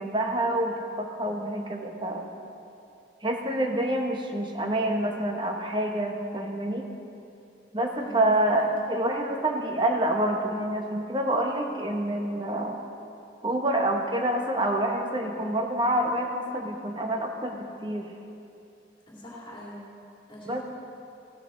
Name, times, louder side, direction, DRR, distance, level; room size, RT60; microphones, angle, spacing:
voice 1, 0.0-2.3 3.2-6.9 7.7-12.8 13.4-18.1 20.5-20.6, right 1 dB, 25° right, 2 dB, 1.0 m, -27 dB
voice 2, 8.0-8.7 19.1-19.9 20.3-20.6, left 1 dB, 25° left, -6 dB, 2.6 m, -42 dB
15.5 x 12.0 x 3.8 m, 2.7 s
head